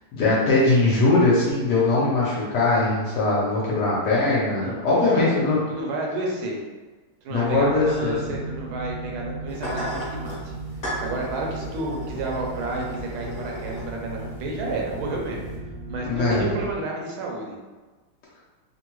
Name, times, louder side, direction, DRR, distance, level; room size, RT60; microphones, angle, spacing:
voice 1, 0.1-5.6 7.3-8.4 16.0-16.5, left 2 dB, 65° left, -6 dB, 1.1 m, -21 dB
voice 2, 4.6-5.3 5.7-6.6 7.2-10.5 11.0-15.5 15.9-17.6, right 2 dB, 80° right, -1 dB, 1.5 m, -31 dB
sound 1, 7.5-16.8, right 2 dB, 45° right, 0.9 m, -36 dB
sound 2, 9.5-15.6, equal, 35° left, 0.9 m, -37 dB
3.5 x 2.2 x 2.9 m, 1.3 s
omnidirectional pair, 2.2 m